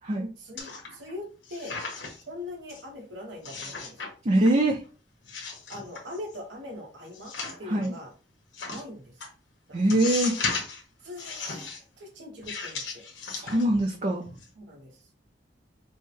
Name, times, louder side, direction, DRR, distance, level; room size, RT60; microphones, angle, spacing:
voice 1, 0.4-1.8 2.3-4.0 5.7-7.3 7.6-8.1 8.7-9.1 9.7-9.8 11.0-13.0 14.6-14.9, left 1 dB, 80° right, 0 dB, 1.2 m, -41 dB
sound 1, 0.6-1.1 1.4-2.3 2.7-2.8 3.4-4.1 4.4-4.9 5.2-6.4 7.1-7.9 8.5-8.8 9.2-9.3 9.9-10.8 11.2-11.8 12.4-13.9 14.2-14.4, left 4 dB, 90° left, 1.3 m, -35 dB
voice 2, 4.2-4.8 7.6-7.9 9.7-10.3 13.3-14.2, right 1 dB, 40° right, 1 dB, 0.6 m, -23 dB
5.4 x 2.2 x 3.4 m, 0.36 s
head